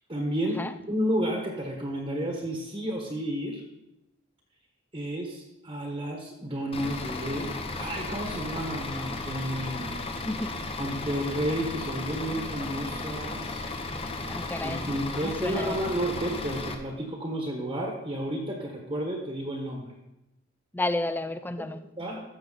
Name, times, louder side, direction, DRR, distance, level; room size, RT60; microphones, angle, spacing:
voice 1, 0.1-3.6 4.9-10.0 10.8-13.6 14.6-19.9 21.6-21.7 22.0-22.2, right 1 dB, 25° right, 0 dB, 1.3 m, -31 dB
Bus / Idling, 6.7-16.7, left 2 dB, 30° left, 0.8 m, -35 dB
voice 2, 10.2-10.6 14.3-14.9 15.1-15.9 20.7-21.8, left 2 dB, 10° left, 11 dB, 0.3 m, -32 dB
13.5 x 6.6 x 4.0 m, 0.93 s
head